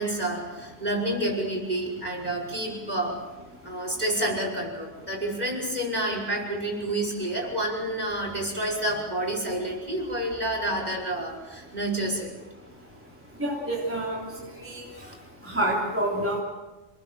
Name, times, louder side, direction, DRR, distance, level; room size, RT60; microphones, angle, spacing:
voice 1, 0.0-3.2 3.6-12.3 15.0-15.2, right 1 dB, 35° right, 0 dB, 6.0 m, -29 dB
voice 2, 13.4-14.2 14.6-14.8 15.4-16.4, right 1 dB, 10° right, -3 dB, 3.4 m, -27 dB
28.0 x 20.0 x 7.7 m, 1.1 s
omnidirectional pair, 1.2 m